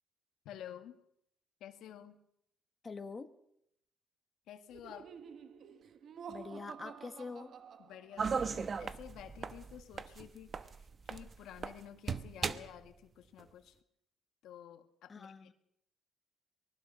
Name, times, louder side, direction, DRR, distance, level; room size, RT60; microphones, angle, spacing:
voice 1, 0.5-1.0 1.6-2.2 4.5-5.1 7.8-13.8 14.4-15.5, left 10 dB, 85° left, 7 dB, 1.8 m, -51 dB
voice 2, 2.8-3.3 6.3-7.6 15.1-15.5, left 4 dB, 35° left, 7 dB, 1.5 m, -45 dB
Laughter, 4.7-8.4, right 7 dB, 65° right, 1.3 m, -50 dB
sound 1, 8.2-11.8 12.1-12.8 13.4-13.5, right 5 dB, 45° right, 1.0 m, -37 dB
24.0 x 20.0 x 5.6 m, 0.74 s
cardioid pair, 90°, 0 cm